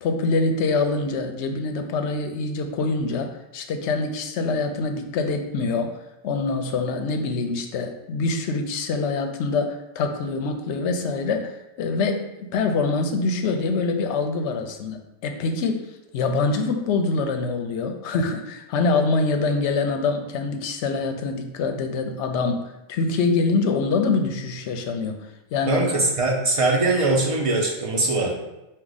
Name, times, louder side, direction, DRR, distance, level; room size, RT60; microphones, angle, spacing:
voice 1, 0.0-6.0 6.2-15.9 16.1-25.2 25.5-25.8, left 3 dB, 70° left, 5 dB, 0.8 m, -25 dB
voice 2, 25.7-28.4, right 2 dB, 35° right, -2 dB, 0.7 m, -21 dB
4.7 x 2.3 x 3.9 m, 0.95 s
omnidirectional pair, 1.2 m